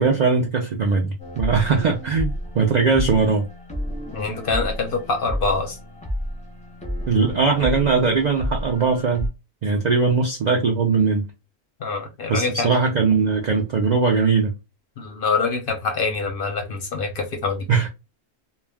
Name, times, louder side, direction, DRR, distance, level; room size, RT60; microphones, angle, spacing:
voice 1, 0.0-3.5 7.1-9.3 9.6-11.3 12.3-14.5 17.7-17.9, right 4 dB, 90° right, 0.3 m, -20 dB
sound 1, 1.2-9.3, equal, 10° left, 0.5 m, -31 dB
voice 2, 4.1-5.8 11.8-12.7 15.0-17.7, left 4 dB, 55° left, 0.7 m, -25 dB
2.3 x 2.2 x 3.3 m
omnidirectional pair, 1.3 m